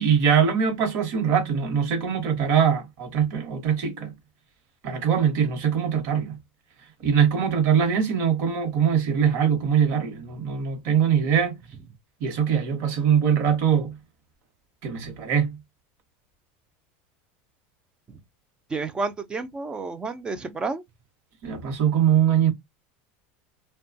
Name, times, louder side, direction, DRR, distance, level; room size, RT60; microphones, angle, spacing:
voice 1, 0.0-4.1 4.8-6.4 7.0-11.6 12.2-14.0 14.8-15.6 21.4-22.5, right 8 dB, 50° right, 1.1 m, -22 dB
voice 2, 18.7-20.8, right 3 dB, 15° right, 0.4 m, -30 dB
2.8 x 2.2 x 2.6 m
supercardioid pair, 145°, 6 cm